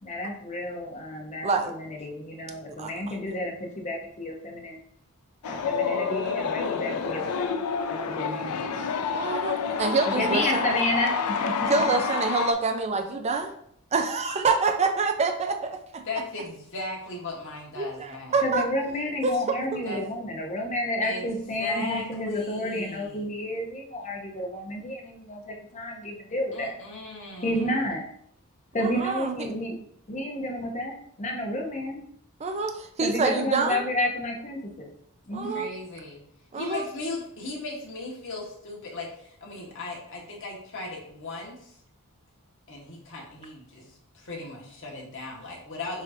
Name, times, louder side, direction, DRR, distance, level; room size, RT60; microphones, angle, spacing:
voice 1, 0.0-4.8 5.4-8.6 10.1-12.0 18.4-26.8 27.4-28.0 28.7-29.8 30.1-32.0 33.0-34.9 35.3-35.6, left 1 dB, 35° left, 0 dB, 0.9 m, -31 dB
sound 1, 5.4-12.5, left 6 dB, 85° left, 0.4 m, -28 dB
voice 2, 9.1-10.6 11.7-13.5 13.9-16.0 17.8-18.6 19.2-19.3 28.8-29.3 32.4-33.8 35.3-35.7 36.5-36.9, right 4 dB, 30° right, 6 dB, 0.4 m, -26 dB
voice 3, 16.0-18.5 19.8-20.0 21.0-23.2 26.5-27.8 35.5-36.2 36.5-41.7 42.7-46.0, left 3 dB, 60° left, -3 dB, 1.4 m, -37 dB
7.2 x 2.8 x 2.7 m, 0.68 s
head